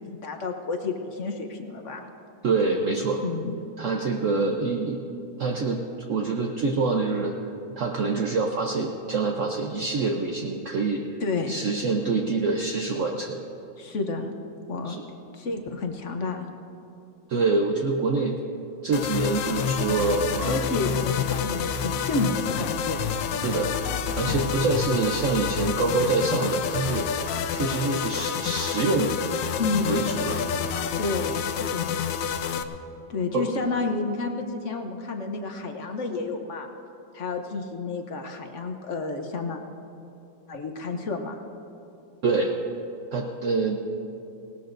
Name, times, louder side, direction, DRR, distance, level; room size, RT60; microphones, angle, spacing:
voice 1, 0.0-2.1 3.2-3.5 11.2-11.5 13.8-14.3 14.7-14.9 15.3-16.5 20.5-23.0 24.3-24.5 29.6-29.9 31.0-31.9 33.1-36.7 37.1-39.6 40.5-41.4, left 3 dB, 55° left, 4 dB, 0.8 m, -30 dB
voice 2, 2.4-3.2 3.8-5.0 5.4-7.3 7.8-11.0 11.5-13.4 14.8-15.0 17.3-18.4 18.8-20.7 23.4-23.7 24.2-27.1 27.5-29.2 29.9-30.4 33.3-33.5 42.2-42.5 43.1-43.8, right 3 dB, 60° right, 1 dB, 0.8 m, -25 dB
sound 1, 18.9-32.6, left 7 dB, 70° left, 1.3 m, -28 dB
19.5 x 18.5 x 2.6 m, 2.8 s
omnidirectional pair, 2.2 m